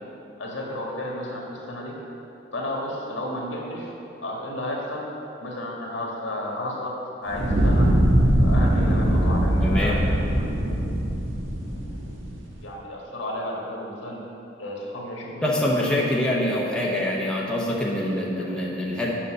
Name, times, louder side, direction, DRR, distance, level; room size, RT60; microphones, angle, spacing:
voice 1, 0.4-2.0 2.5-3.9 4.2-5.1 5.4-7.9 8.4-10.8 12.6-14.2 14.6-16.0 18.4-18.5, left 1 dB, 70° left, -2 dB, 1.6 m, -33 dB
Fire, 7.3-12.5, right 1 dB, 75° right, 1.3 m, -21 dB
voice 2, 9.6-10.0 15.4-19.1, left 1 dB, 5° left, -4 dB, 0.8 m, -25 dB
7.9 x 5.4 x 6.5 m, 2.9 s
head